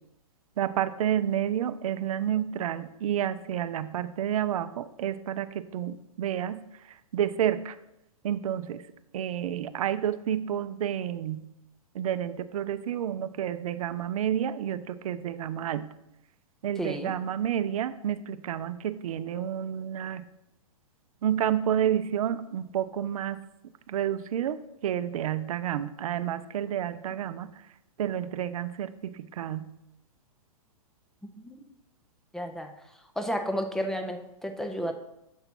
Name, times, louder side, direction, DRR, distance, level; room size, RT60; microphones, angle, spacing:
voice 1, 0.6-7.8 8.2-8.9 9.1-11.5 11.9-15.9 16.6-20.3 21.2-23.4 23.9-27.6 28.0-29.7, right 10 dB, 75° right, 13 dB, 0.4 m, -30 dB
voice 2, 16.8-17.1 31.3-31.6 32.3-32.7 33.2-34.9, equal, ahead, 6 dB, 0.4 m, -32 dB
6.9 x 3.9 x 4.4 m, 0.86 s
hypercardioid pair, 130°, 18 cm